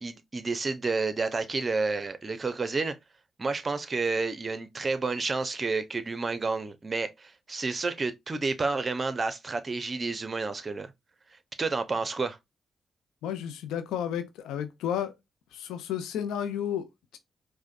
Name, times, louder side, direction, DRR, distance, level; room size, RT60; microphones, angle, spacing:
voice 1, 0.0-3.0 3.4-10.9 11.6-12.4, right 3 dB, 40° right, 0.7 m, -30 dB
voice 2, 13.2-15.1 15.5-17.2, left 9 dB, 85° left, 0.5 m, -32 dB
4.8 x 2.2 x 2.5 m
hypercardioid pair, 45°, 0 cm